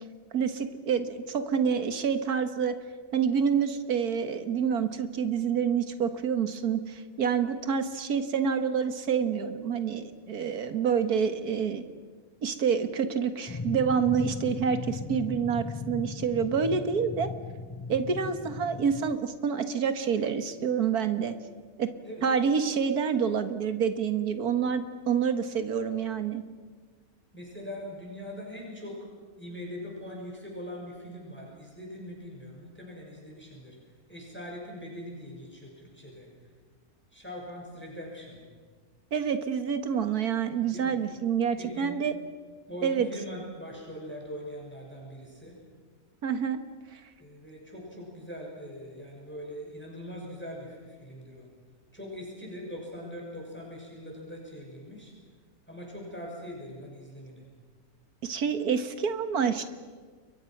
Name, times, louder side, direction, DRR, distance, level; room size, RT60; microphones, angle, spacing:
voice 1, 0.3-2.7 3.1-11.9 12.4-17.3 17.9-21.4 21.8-21.9 22.2-26.4 39.1-42.1 42.8-43.1 46.2-46.6 46.9-47.0 58.2-59.6, right 7 dB, 80° right, 9 dB, 1.9 m, -27 dB
sound 1, 13.5-19.2, left 4 dB, 30° left, 0.3 m, -37 dB
voice 2, 27.3-29.1 29.4-33.8 34.1-36.3 37.1-38.4 40.7-41.0 41.6-42.0 42.7-45.6 47.2-51.5 51.9-55.1 55.7-57.4, equal, 5° left, -2 dB, 6.4 m, -42 dB
29.5 x 23.0 x 6.0 m, 1.5 s
omnidirectional pair, 1.6 m